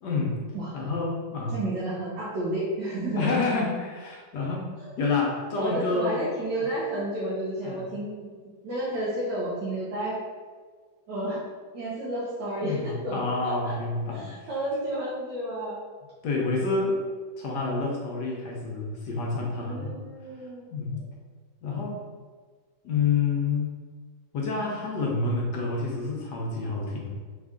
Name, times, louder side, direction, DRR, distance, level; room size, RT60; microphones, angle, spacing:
voice 1, 0.0-0.4 0.7-1.6 3.2-4.7 5.0-6.2 6.6-6.7 7.6-8.0 12.6-14.5 16.2-17.0 17.4-19.9 20.7-21.0 21.6-22.0 22.8-23.7 24.3-27.1, left 3 dB, 70° left, -2 dB, 1.2 m, -28 dB
voice 2, 1.5-3.3 4.8-4.9 5.6-8.3 8.6-10.2 11.1-11.4 11.7-13.2 13.6-13.7 14.1-15.8 19.6-20.7, right 1 dB, 75° right, -8 dB, 1.5 m, -31 dB
4.1 x 2.4 x 3.6 m, 1.5 s
omnidirectional pair, 2.0 m